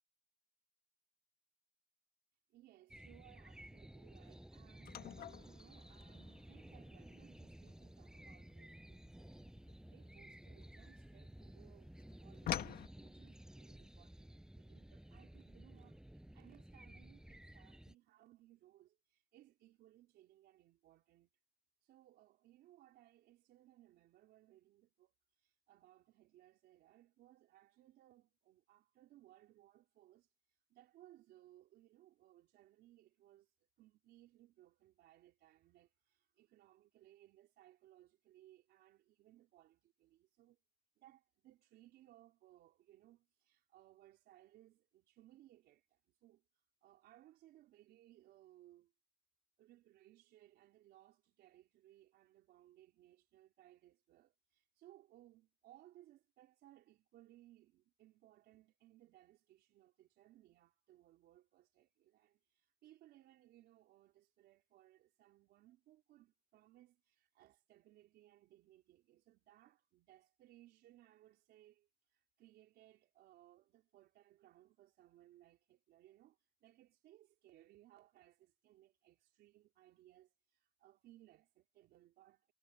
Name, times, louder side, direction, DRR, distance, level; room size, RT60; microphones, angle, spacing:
voice 1, 2.5-9.4 9.8-21.3 21.8-30.3 30.7-33.5 33.8-40.6 41.0-46.4 46.8-48.9 49.6-82.5, right 14 dB, 75° right, 4.1 m, -65 dB
sound 1, 2.9-17.9, right 1 dB, 5° right, 5.4 m, -55 dB
sound 2, 4.9-11.3 11.6-12.9, left 11 dB, 60° left, 1.6 m, -47 dB
cardioid pair, 110°, 17 cm